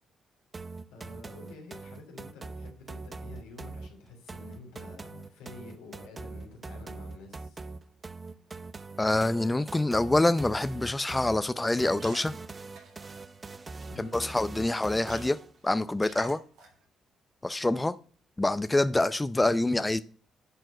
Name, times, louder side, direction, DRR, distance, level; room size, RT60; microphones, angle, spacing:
sound 1, 0.5-15.6, right 3 dB, 35° right, 0.5 m, -43 dB
voice 1, 0.9-7.7 13.9-14.2, left 3 dB, 90° left, 2.9 m, -49 dB
voice 2, 9.0-12.4 14.0-15.4 15.6-16.4 17.4-18.0 18.4-20.0, left 2 dB, 15° left, 0.5 m, -26 dB
sound 2, 10.8-10.9 11.1-11.3 11.8-13.9 14.3-14.4 14.7-14.8 15.0-15.6 16.0-16.8, right 3 dB, 80° right, 2.8 m, -47 dB
10.5 x 4.5 x 6.2 m
supercardioid pair, 55°, 0 cm